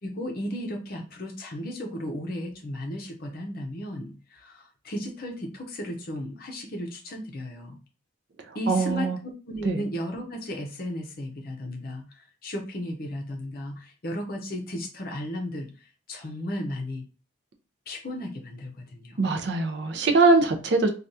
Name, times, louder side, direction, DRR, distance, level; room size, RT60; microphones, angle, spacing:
voice 1, 0.0-7.8 8.5-15.7 16.1-17.0 17.9-19.2, left 1 dB, 45° left, 0.7 m, -35 dB
voice 2, 8.7-9.2 9.6-9.8 19.2-20.9, right 3 dB, 60° right, 0.5 m, -22 dB
3.3 x 2.3 x 2.7 m
head